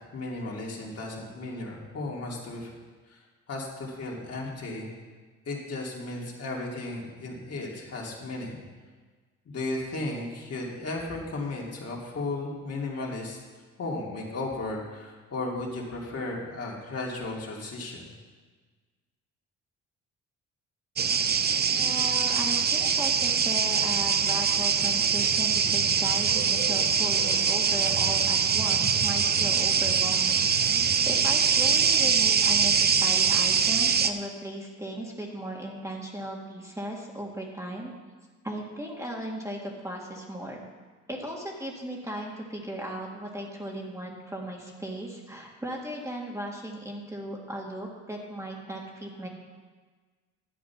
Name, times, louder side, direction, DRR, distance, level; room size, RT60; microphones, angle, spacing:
voice 1, 0.1-2.7 3.1-4.9 5.4-8.6 9.5-13.4 13.8-18.1, left 2 dB, 55° left, -3 dB, 2.7 m, -35 dB
sound 1, 21.0-34.1, right 6 dB, 35° right, 0.6 m, -23 dB
voice 2, 21.7-30.5 30.8-37.9 38.4-40.6 41.1-49.3, right 1 dB, 10° right, -1 dB, 1.9 m, -37 dB
11.5 x 7.7 x 5.8 m, 1.4 s
cardioid pair, 90°, 30 cm